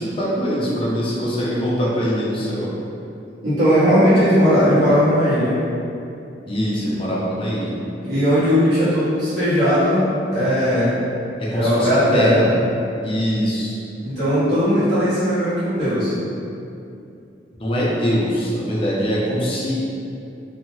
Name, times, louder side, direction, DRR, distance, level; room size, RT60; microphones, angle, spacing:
voice 1, 0.0-2.7 6.5-7.7 11.4-12.5 13.0-13.8 17.6-19.7, equal, 30° left, -6 dB, 0.5 m, -22 dB
voice 2, 3.4-5.6 8.0-11.0 11.5-12.5 14.0-16.1, equal, 65° right, -13 dB, 1.1 m, -18 dB
2.7 x 2.2 x 2.9 m, 2.7 s
head